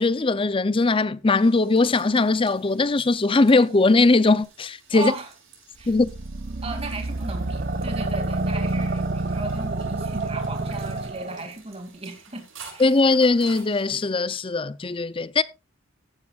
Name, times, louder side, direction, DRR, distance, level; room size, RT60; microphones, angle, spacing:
voice 1, 0.0-5.1 5.9-6.1 12.8-15.4, left 3 dB, 25° left, 0.5 m, -20 dB
sound 1, 1.1-14.1, right 5 dB, 80° right, 7.2 m, -50 dB
voice 2, 4.9-5.3 5.8-5.9 6.6-12.4 12.7-13.0, right 2 dB, 30° right, 2.5 m, -36 dB
sound 2, 5.8-11.5, right 2 dB, 50° right, 0.8 m, -28 dB
14.5 x 11.5 x 2.4 m
head